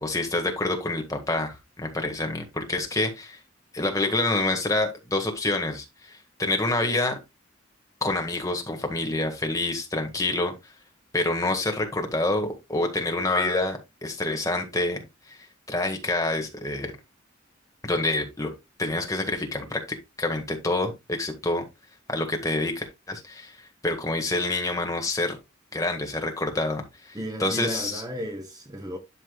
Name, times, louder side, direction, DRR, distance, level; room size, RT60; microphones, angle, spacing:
voice 1, 0.0-3.4 3.7-7.2 8.0-10.5 11.1-15.4 15.7-16.9 17.8-18.5 18.8-21.6 22.1-23.6 23.8-25.4 25.7-28.0, left 2 dB, 15° left, 1.7 m, -27 dB
voice 2, 27.1-29.0, equal, 20° right, 1.0 m, -34 dB
11.0 x 6.0 x 2.3 m
head